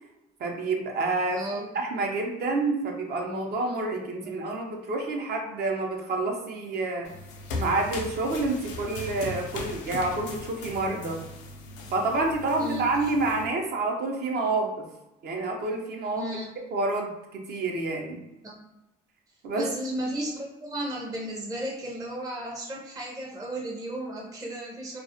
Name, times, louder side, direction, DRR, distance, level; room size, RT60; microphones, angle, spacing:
voice 1, 0.4-7.1 7.5-11.2 11.9-14.9 15.2-16.3 16.7-18.2 19.4-19.7, right 2 dB, 60° right, 1 dB, 0.6 m, -28 dB
voice 2, 1.3-1.6 4.2-4.6 12.6-13.1 16.1-16.5 18.4-18.6 19.6-25.0, right 1 dB, 20° right, -3 dB, 0.5 m, -34 dB
sound 1, 7.0-13.5, left 3 dB, 90° left, 0.4 m, -38 dB
2.3 x 2.0 x 2.6 m, 0.95 s
supercardioid pair, 85°, 19 cm